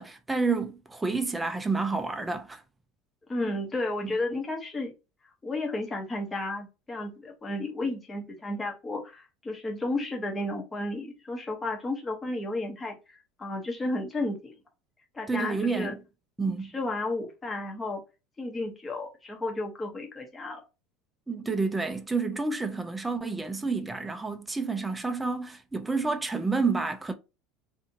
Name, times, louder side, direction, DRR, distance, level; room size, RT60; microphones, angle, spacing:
voice 1, 0.0-2.6 15.3-16.0 16.4-16.7 21.3-27.1, right 4 dB, 10° right, 0.4 m, -29 dB
voice 2, 3.3-4.9 5.4-14.5 15.1-15.9 16.7-18.0 18.4-20.6, left 2 dB, 15° left, 0.7 m, -33 dB
2.7 x 2.5 x 2.6 m
supercardioid pair, 120°, 0 cm